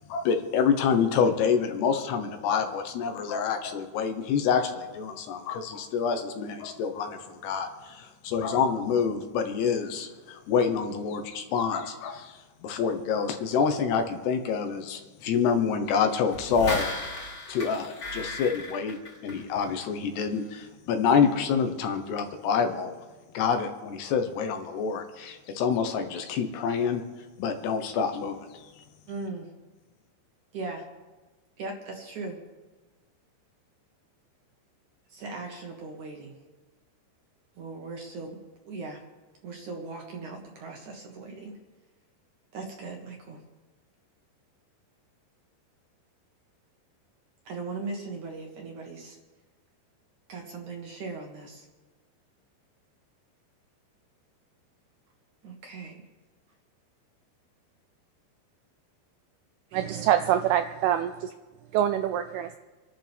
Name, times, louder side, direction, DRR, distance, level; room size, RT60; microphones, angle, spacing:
voice 1, 0.1-16.9 17.5-19.0 19.2-22.9 23.3-27.0 27.4-28.7, left 6 dB, 75° left, 6 dB, 3.2 m, -27 dB
sound 1, 16.3-19.8 20.2-20.3, left 2 dB, 30° left, 3.1 m, -35 dB
voice 2, 29.1-29.5 30.5-30.9 31.6-32.4 35.1-36.4 37.6-38.4 38.6-39.0 39.4-41.6 42.5-43.4 47.5-49.2 50.3-51.7 55.4-56.0 59.7-60.1, right 3 dB, 60° right, 1 dB, 2.3 m, -38 dB
voice 3, 59.7-61.3 61.7-62.6, right 11 dB, 85° right, 8 dB, 2.3 m, -25 dB
28.0 x 11.5 x 3.6 m, 1.2 s
omnidirectional pair, 5.0 m